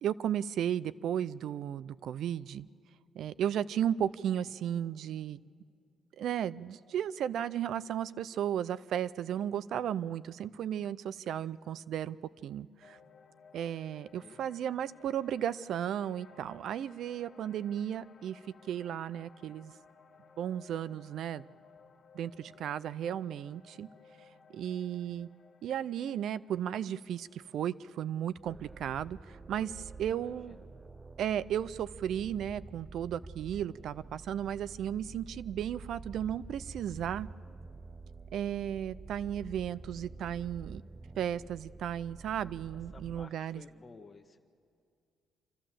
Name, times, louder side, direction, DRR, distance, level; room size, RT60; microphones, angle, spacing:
voice 1, 0.0-2.7 3.2-5.4 6.2-12.2 12.4-13.0 13.5-18.4 18.7-19.7 20.4-21.5 22.1-23.9 24.5-25.3 25.6-30.5 31.2-37.3 38.3-40.8 41.2-43.6, right 10 dB, 75° right, 17 dB, 0.4 m, -34 dB
sound 1, 12.8-29.1, left 5 dB, 60° left, 2.0 m, -59 dB
sound 2, 28.4-43.3, right 4 dB, 20° right, 0.5 m, -48 dB
voice 2, 30.0-30.7 42.7-44.5, left 4 dB, 35° left, 5 dB, 1.1 m, -55 dB
28.0 x 12.0 x 7.6 m, 2.3 s
cardioid pair, 90°, 0 cm